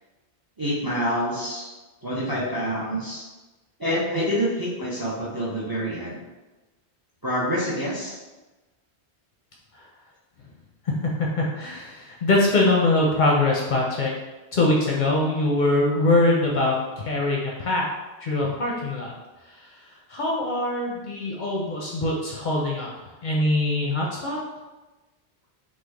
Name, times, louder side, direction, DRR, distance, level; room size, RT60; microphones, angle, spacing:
voice 1, 0.6-1.7 2.0-3.2 3.8-6.2 7.2-8.2, equal, 30° right, -6 dB, 0.4 m, -27 dB
voice 2, 10.8-14.1 14.5-17.8 18.2-19.1 19.5-22.9 23.2-24.4, left 2 dB, 60° left, -3 dB, 0.6 m, -23 dB
3.2 x 2.2 x 3.3 m, 1.2 s
omnidirectional pair, 1.1 m